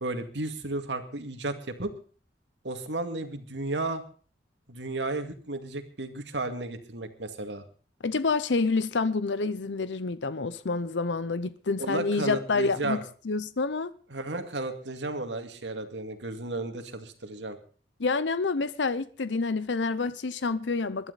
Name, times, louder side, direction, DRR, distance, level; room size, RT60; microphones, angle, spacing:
voice 1, 0.0-1.9 2.6-4.0 4.7-7.6 11.8-13.0 14.1-17.6, right 2 dB, 80° right, 2.2 m, -33 dB
voice 2, 8.0-13.9 18.0-21.1, left 4 dB, 85° left, 0.7 m, -28 dB
21.5 x 12.0 x 4.1 m
head